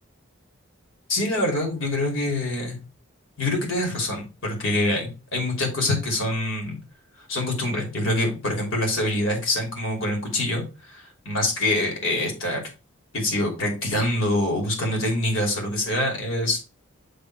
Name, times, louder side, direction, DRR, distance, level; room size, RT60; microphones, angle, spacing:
voice 1, 1.1-2.8 3.4-6.8 7.3-10.6 10.9-12.6 13.1-16.6, left 1 dB, 70° left, 0 dB, 2.8 m, -25 dB
6.7 x 3.7 x 4.6 m, 0.31 s
head